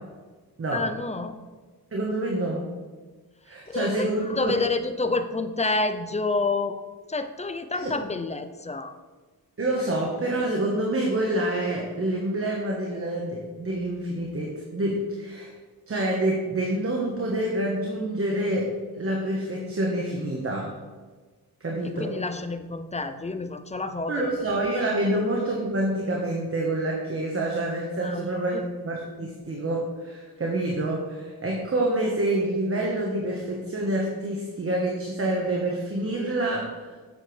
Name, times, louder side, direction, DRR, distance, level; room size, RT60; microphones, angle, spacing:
voice 1, 0.7-1.4 3.7-6.8 7.1-8.9 21.8-24.6 25.0-25.2 28.0-28.7, left 3 dB, 20° left, 9 dB, 0.5 m, -29 dB
voice 2, 1.9-2.7 3.5-4.5 7.7-7.9 9.6-15.5 15.9-20.7 21.6-22.2 24.1-36.9, right 1 dB, 35° right, -2 dB, 1.3 m, -27 dB
8.4 x 7.5 x 3.3 m, 1.4 s
wide cardioid pair, 95°, 38 cm